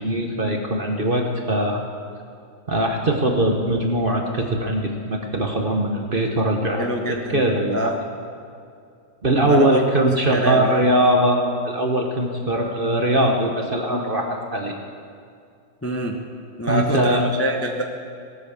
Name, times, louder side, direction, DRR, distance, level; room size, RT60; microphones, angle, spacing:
voice 1, 0.0-1.8 2.7-7.9 9.2-14.8 16.7-17.3, right 1 dB, 35° right, 2 dB, 0.9 m, -21 dB
voice 2, 6.8-7.4 7.7-8.0 9.4-9.8 10.3-10.8 15.8-16.2 16.6-17.8, equal, 15° left, 2 dB, 0.4 m, -25 dB
17.5 x 8.6 x 7.1 m, 2.4 s
omnidirectional pair, 2.1 m